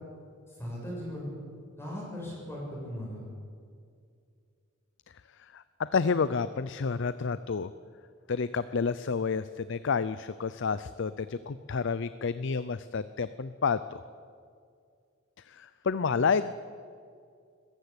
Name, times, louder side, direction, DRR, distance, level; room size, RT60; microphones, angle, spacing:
voice 1, 0.5-1.3 1.8-3.3, equal, 10° left, -4 dB, 6.5 m, -38 dB
voice 2, 5.5-7.7 8.3-14.0 15.5-16.5, left 5 dB, 60° left, 14 dB, 0.5 m, -30 dB
21.5 x 14.5 x 8.6 m, 2.3 s
head